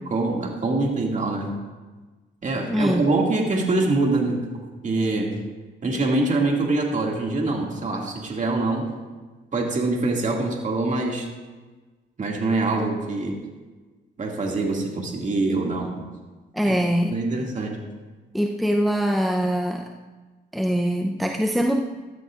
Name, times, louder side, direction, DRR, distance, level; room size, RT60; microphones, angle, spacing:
voice 1, 0.1-1.5 2.4-4.4 4.8-5.3 5.8-8.9 9.5-11.3 12.2-13.4 14.2-15.9 16.6-16.8 17.1-17.8, right 2 dB, 40° right, -1 dB, 2.2 m, -24 dB
voice 2, 2.7-3.0 16.5-17.2 18.3-19.9 20.5-21.8, equal, ahead, 2 dB, 0.6 m, -23 dB
13.0 x 13.0 x 2.5 m, 1.3 s
cardioid pair, 90°, 20 cm